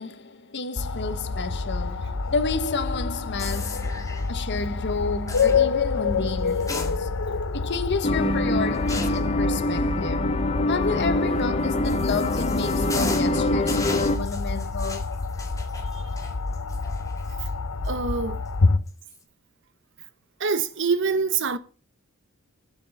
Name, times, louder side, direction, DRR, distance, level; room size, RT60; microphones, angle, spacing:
voice 1, 0.0-15.3, left 4 dB, 55° left, 1.2 m, -31 dB
sound 1, 0.8-18.8, left 4 dB, 75° left, 0.8 m, -28 dB
sound 2, 3.4-4.3 5.3-5.6 6.5-7.4 7.7-7.8 8.9-9.3 11.4-17.5 17.8-17.9 18.9-19.2, left 3 dB, 15° left, 1.8 m, -36 dB
sound 3, 8.0-14.2, left 1 dB, 30° left, 0.7 m, -25 dB
voice 2, 17.8-18.4 20.4-21.6, right 5 dB, 60° right, 0.9 m, -25 dB
7.9 x 7.6 x 7.1 m
head